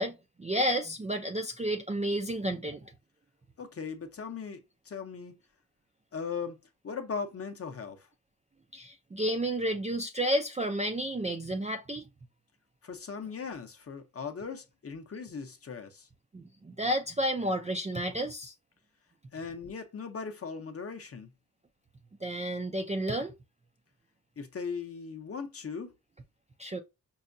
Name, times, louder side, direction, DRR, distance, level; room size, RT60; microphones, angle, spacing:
voice 1, 0.0-2.8 8.7-12.1 16.3-18.5 22.2-23.3 26.6-26.8, right 1 dB, 20° right, 0.3 m, -31 dB
voice 2, 3.6-5.4 6.1-8.1 12.8-16.1 19.3-21.3 24.4-25.9, left 5 dB, 40° left, 0.6 m, -39 dB
5.4 x 2.2 x 2.5 m
wide cardioid pair, 145°, 38 cm